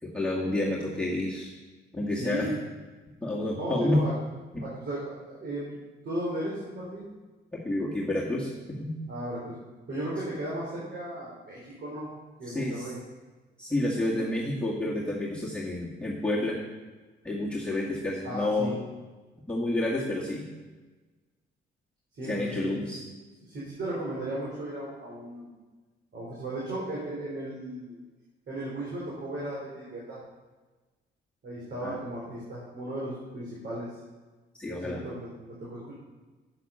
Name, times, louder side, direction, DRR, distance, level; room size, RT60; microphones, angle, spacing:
voice 1, 0.0-1.5 1.9-2.5 3.2-4.0 4.5-4.6 7.5-8.5 8.8-8.9 12.5-12.9 13.6-16.6 17.2-18.7 19.5-20.5 22.3-23.0 31.8-32.0 34.6-35.0, left 1 dB, 5° left, -6 dB, 2.0 m, -29 dB
voice 2, 2.1-2.6 3.5-4.1 4.6-5.8 6.0-7.1 9.1-9.6 9.9-12.1 12.4-13.0 18.2-18.8 22.2-22.8 23.4-25.5 26.1-28.0 28.5-30.2 31.4-33.9 34.7-36.0, right 1 dB, 60° right, -6 dB, 3.8 m, -35 dB
8.8 x 8.1 x 5.6 m, 1.3 s
cardioid pair, 90°, 20 cm